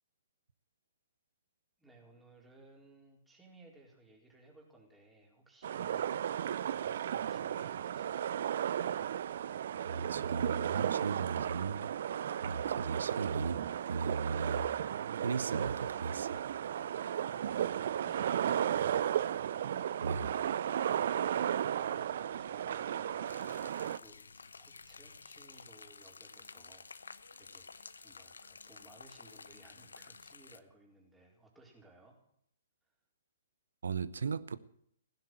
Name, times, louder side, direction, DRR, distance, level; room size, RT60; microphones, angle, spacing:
voice 1, 1.8-8.5 21.2-32.2 32.8-32.9, right 2 dB, 5° right, 4.4 m, -61 dB
sound 1, 5.6-24.0, right 9 dB, 60° right, 0.5 m, -34 dB
voice 2, 9.8-11.9 12.4-14.7 15.2-16.4 20.0-20.4 33.8-34.6, right 5 dB, 75° right, 0.9 m, -37 dB
sound 2, 23.3-30.6, left 4 dB, 80° left, 0.8 m, -52 dB
16.0 x 10.5 x 7.9 m
hypercardioid pair, 130°, 0 cm